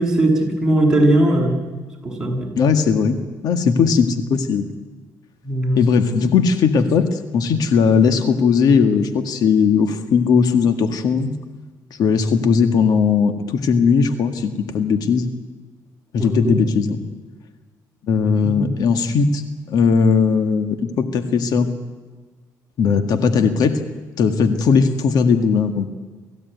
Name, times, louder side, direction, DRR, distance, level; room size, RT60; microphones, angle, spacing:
voice 1, 0.0-1.6 2.0-2.5 5.4-5.9 16.2-16.6 18.4-18.7, right 1 dB, 10° right, -1 dB, 8.0 m, -19 dB
voice 2, 2.6-3.2 3.4-4.7 5.7-11.3 12.0-15.3 16.1-17.0 18.1-19.4 19.7-21.7 22.8-23.8 24.2-25.9, left 5 dB, 70° left, 8 dB, 1.8 m, -18 dB
27.0 x 15.5 x 9.4 m, 1.4 s
cardioid pair, 95°, 7 cm